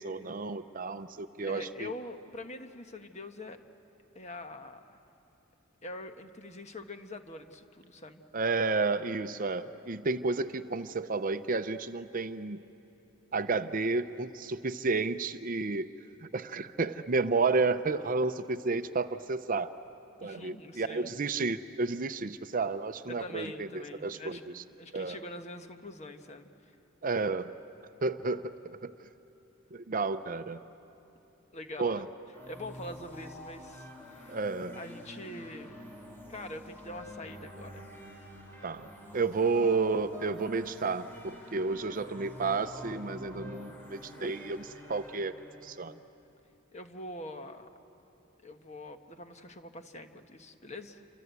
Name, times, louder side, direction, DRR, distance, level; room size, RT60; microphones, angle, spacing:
voice 1, 0.0-1.9 8.3-12.6 13.3-15.9 16.2-19.7 20.2-24.6 24.9-25.2 27.0-27.5 28.0-28.9 29.7-30.6 31.8-32.0 34.3-34.8 38.6-38.9 39.1-45.3 45.6-46.0, right 3 dB, 40° right, 11 dB, 0.6 m, -31 dB
voice 2, 1.4-3.6 4.1-5.0 5.8-8.2 20.2-21.2 23.1-26.8 31.5-32.0 32.5-34.4 34.7-35.8 36.3-37.9 41.5-41.6 44.2-44.3 46.7-47.7 48.4-51.1, left 1 dB, 30° left, 7 dB, 1.2 m, -44 dB
sound 1, 32.3-45.8, equal, 10° left, 3.9 m, -47 dB
28.5 x 25.5 x 8.2 m, 3.0 s
head